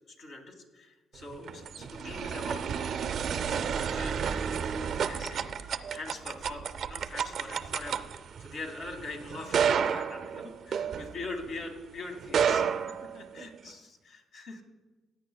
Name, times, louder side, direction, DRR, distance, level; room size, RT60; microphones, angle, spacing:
voice 1, 0.1-0.5 1.1-3.1 3.5-8.1 8.4-12.6 13.0-14.6, left 2 dB, 70° left, 3 dB, 1.8 m, -43 dB
sound 1, 1.2-11.6 12.2-13.7, right 7 dB, 65° right, 0.4 m, -31 dB
16.0 x 9.4 x 2.2 m, 1.3 s
cardioid pair, 90°, 0 cm